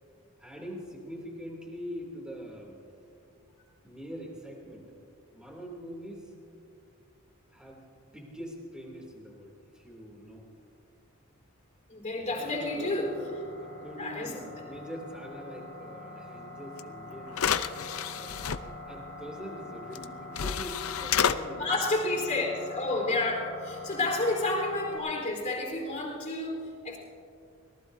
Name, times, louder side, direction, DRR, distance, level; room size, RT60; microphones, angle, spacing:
voice 1, 0.4-2.9 3.8-4.9 5.3-6.3 7.5-7.8 8.1-10.5 12.4-17.7 17.9-21.8 23.9-24.3, equal, 5° right, -1 dB, 2.7 m, -43 dB
voice 2, 11.9-13.1 14.0-14.3 21.6-27.0, left 2 dB, 35° left, -2 dB, 3.8 m, -30 dB
sound 1, 12.3-25.0, left 2 dB, 30° right, 4.8 m, -44 dB
sound 2, 16.8-16.9 17.3-18.6 19.9-20.0 20.3-21.4, left 8 dB, 75° left, 0.6 m, -29 dB
24.5 x 18.5 x 2.7 m, 2.5 s
head